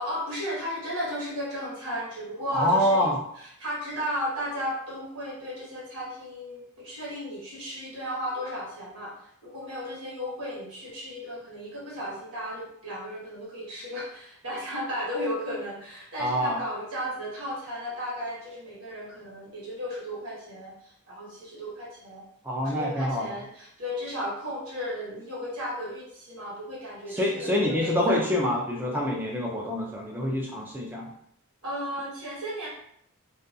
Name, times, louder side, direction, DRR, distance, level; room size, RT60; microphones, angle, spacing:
voice 1, 0.0-3.0 3.4-22.2 22.5-28.2 31.6-32.7, equal, 85° right, -6 dB, 1.1 m, -34 dB
voice 2, 2.5-3.2 16.2-16.6 22.4-23.3 27.1-31.1, left 1 dB, 10° right, -1 dB, 0.4 m, -26 dB
2.4 x 2.2 x 2.6 m, 0.70 s
head